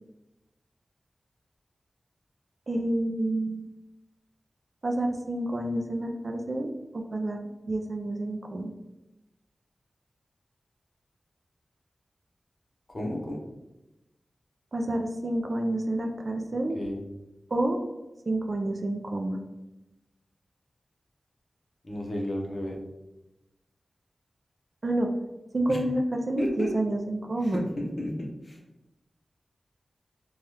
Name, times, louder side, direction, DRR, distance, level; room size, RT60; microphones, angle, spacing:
voice 1, 2.7-3.6 4.8-7.4 7.7-8.7 14.7-16.8 17.5-17.8 18.3-19.4 24.8-25.1 25.5-27.7, right 1 dB, 50° right, 3 dB, 0.3 m, -29 dB
voice 2, 12.9-13.4 16.7-17.0 21.8-22.8 25.7-25.8 26.4-26.7 27.4-28.1 28.4-28.6, left 1 dB, 40° left, -1 dB, 0.7 m, -32 dB
3.3 x 2.3 x 2.8 m, 0.98 s
wide cardioid pair, 100°, 0 cm